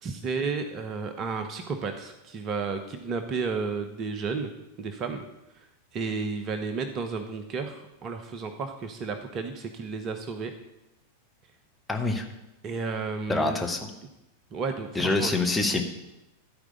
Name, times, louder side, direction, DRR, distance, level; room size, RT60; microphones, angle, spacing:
voice 1, 0.0-4.5 4.8-5.3 5.5-5.7 5.9-10.5 12.6-13.6 14.5-15.4, right 4 dB, 35° right, 8 dB, 1.0 m, -32 dB
voice 2, 11.9-12.3 13.3-13.9 14.9-15.8, left 2 dB, 5° left, 2 dB, 1.5 m, -25 dB
14.0 x 4.9 x 8.0 m, 0.93 s
figure-of-eight pair, 90°, 0 cm